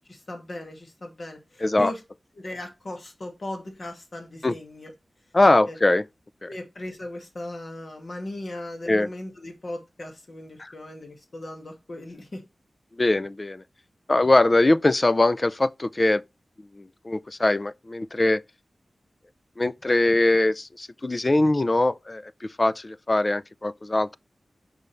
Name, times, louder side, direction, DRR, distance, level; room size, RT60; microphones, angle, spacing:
voice 1, 0.1-2.0 2.3-4.9 5.7-5.8 6.5-12.4, left 1 dB, 60° left, 2.4 m, -38 dB
voice 2, 1.6-1.9 4.4-4.6 5.3-6.0 6.4-6.5 8.9-9.1 10.6-10.7 13.0-13.6 14.1-16.2 16.7-18.4 19.6-24.2, left 2 dB, 35° left, 0.4 m, -22 dB
5.4 x 5.2 x 3.4 m
cardioid pair, 50°, 0 cm